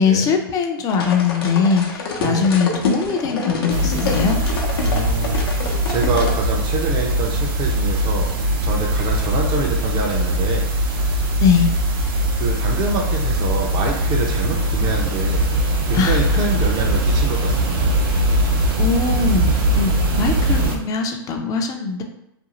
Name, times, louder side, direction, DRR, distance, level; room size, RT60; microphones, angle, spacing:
voice 1, 0.0-4.4 11.4-11.7 15.9-16.2 18.8-19.5 19.7-22.0, left 5 dB, 30° left, 4 dB, 0.4 m, -20 dB
sound 1, 0.9-6.4, left 4 dB, 80° left, 0.6 m, -27 dB
voice 2, 2.2-2.5 4.8-5.6 5.9-8.3 8.6-10.7 12.4-15.4 15.9-17.9, right 3 dB, 35° right, -1 dB, 0.5 m, -26 dB
sound 2, 3.7-20.8, right 1 dB, 70° right, 0.7 m, -20 dB
2.5 x 2.3 x 2.9 m, 0.82 s
hypercardioid pair, 120°, 12 cm